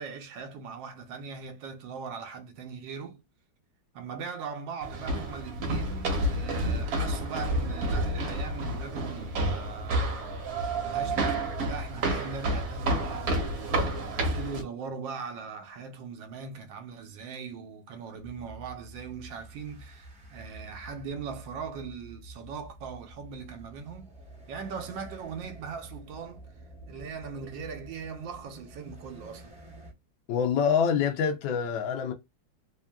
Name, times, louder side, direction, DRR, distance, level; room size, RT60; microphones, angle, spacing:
voice 1, 0.0-3.2 3.9-10.4 10.8-24.1 24.5-26.4 26.9-29.5, right 5 dB, 75° right, 1.4 m, -40 dB
sound 1, 4.8-14.6, right 1 dB, 55° right, 1.3 m, -30 dB
sound 2, 18.2-29.9, right 2 dB, 5° right, 0.6 m, -49 dB
voice 2, 30.3-32.1, left 7 dB, 75° left, 1.3 m, -26 dB
3.4 x 2.5 x 2.2 m
omnidirectional pair, 2.1 m